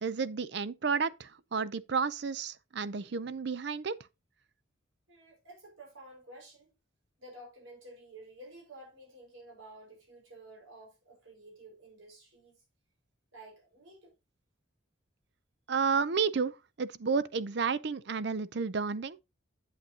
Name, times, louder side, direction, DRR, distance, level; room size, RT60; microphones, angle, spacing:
voice 1, 0.0-4.0 15.7-19.2, right 5 dB, 55° right, 0.5 m, -31 dB
voice 2, 5.1-6.7 7.2-12.6 13.3-14.1, right 1 dB, 85° right, 4.8 m, -52 dB
8.6 x 8.1 x 2.8 m
head